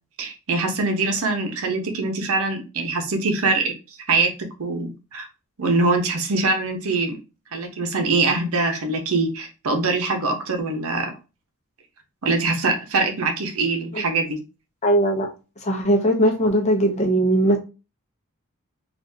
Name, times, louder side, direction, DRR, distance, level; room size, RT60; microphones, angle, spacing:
voice 1, 0.2-3.7 4.1-4.3 4.6-5.3 5.6-7.2 7.5-11.2 12.2-14.4, right 3 dB, 70° right, 0.7 m, -23 dB
voice 2, 14.8-15.3 15.6-17.6, right 1 dB, 30° left, 0.7 m, -19 dB
3.5 x 2.5 x 2.7 m
head